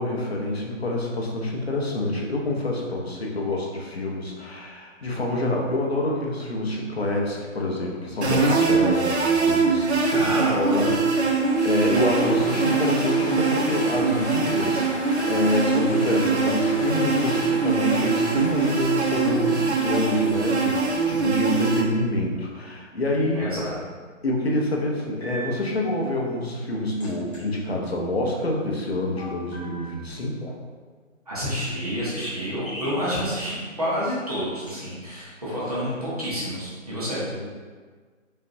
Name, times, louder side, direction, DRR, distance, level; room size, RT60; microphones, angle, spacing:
voice 1, 0.0-10.9 11.2-23.5 24.2-30.6 37.3-37.5, left 1 dB, 50° left, -1 dB, 0.8 m, -27 dB
sound 1, 8.2-21.8, right 4 dB, 55° right, 0.6 m, -23 dB
voice 2, 10.1-11.0 23.4-23.8 31.3-37.2, equal, 30° right, -8 dB, 1.0 m, -29 dB
sound 2, 10.3-21.6, left 1 dB, 65° left, 1.2 m, -36 dB
sound 3, 25.2-25.4 27.0-27.4 29.2-30.0 32.1-32.4 32.6-33.0 34.7-34.8, right 1 dB, 25° left, 1.4 m, -38 dB
5.0 x 2.8 x 2.7 m, 1.5 s
hypercardioid pair, 175°, 39 cm